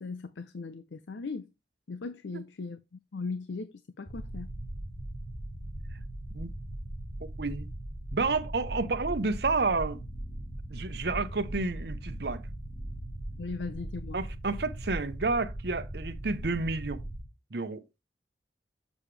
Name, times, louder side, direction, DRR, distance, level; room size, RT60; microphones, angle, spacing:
voice 1, 0.0-1.5 1.9-4.5 13.4-14.2, left 4 dB, 80° left, 0.6 m, -38 dB
sound 1, 4.1-17.2, right 1 dB, 30° left, 3.9 m, -39 dB
voice 2, 7.4-7.7 8.1-10.0 10.7-12.4 14.1-17.0 17.5-17.8, right 3 dB, 65° right, 0.8 m, -30 dB
7.2 x 6.9 x 3.3 m
head